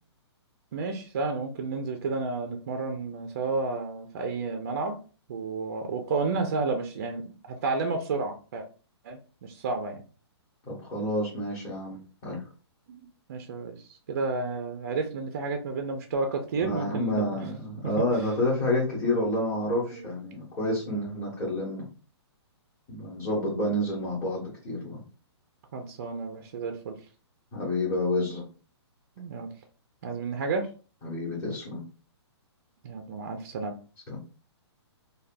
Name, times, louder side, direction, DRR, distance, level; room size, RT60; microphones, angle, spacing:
voice 1, 0.7-5.0 5.3-8.7 9.0-10.0 12.9-17.5 17.8-17.9 19.9-20.0 25.7-27.0 29.2-29.5 30.0-30.7 32.8-33.8, right 4 dB, 35° right, 5 dB, 0.4 m, -31 dB
voice 2, 10.7-12.4 16.6-21.8 22.9-25.0 27.5-28.4 31.0-31.8 34.1-34.2, left 1 dB, 15° left, -7 dB, 0.8 m, -29 dB
3.3 x 2.2 x 2.5 m, 0.37 s
hypercardioid pair, 165°, 15 cm